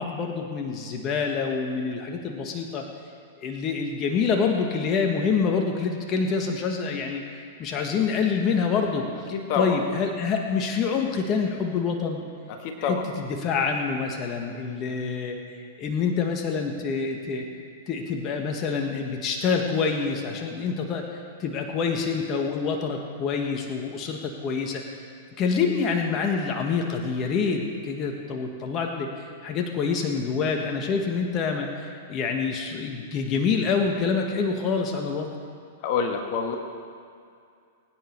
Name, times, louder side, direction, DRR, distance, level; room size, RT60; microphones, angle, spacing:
voice 1, 0.0-2.9 3.4-7.2 7.6-9.3 9.6-12.2 12.8-15.4 15.8-17.5 17.9-21.1 21.4-24.8 25.4-35.3, left 5 dB, 35° left, 2 dB, 1.7 m, -26 dB
voice 2, 9.3-9.8 12.5-13.0 35.8-36.6, left 5 dB, 50° left, 3 dB, 1.7 m, -27 dB
22.5 x 9.6 x 4.7 m, 2.4 s
hypercardioid pair, 120°, 0 cm